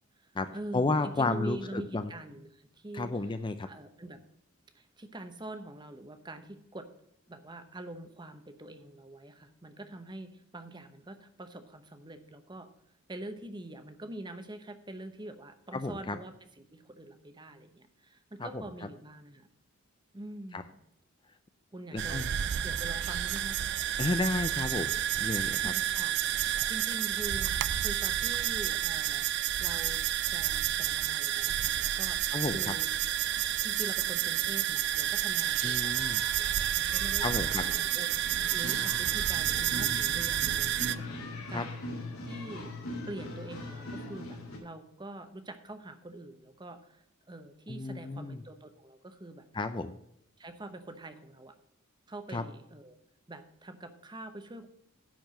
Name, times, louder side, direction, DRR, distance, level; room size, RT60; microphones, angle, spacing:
voice 1, 0.1-3.2 3.6-4.2 4.7-6.9 7.3-12.7 13.1-19.5 20.1-20.7 21.7-22.3 22.6-23.6 25.4-30.0 30.3-32.9 33.6-36.1 36.4-37.6 37.9-41.2 41.5-41.9 42.3-42.7 43.1-49.5 50.4-51.5 52.1-53.0 53.3-54.7, right 1 dB, 20° right, 9 dB, 0.8 m, -45 dB
voice 2, 0.7-2.1 2.9-3.7 15.7-16.2 18.4-18.6 20.5-20.6 21.9-22.3 24.0-25.7 32.3-32.6 35.6-36.2 37.2-37.6 41.5-41.6 47.7-48.4 49.5-50.0 52.3-52.4, left 3 dB, 20° left, 10 dB, 0.4 m, -32 dB
sound 1, 22.0-41.0, right 12 dB, 55° right, 0.4 m, -30 dB
sound 2, 35.0-44.6, left 1 dB, 85° left, 3.0 m, -42 dB
10.5 x 4.6 x 7.6 m, 0.75 s
head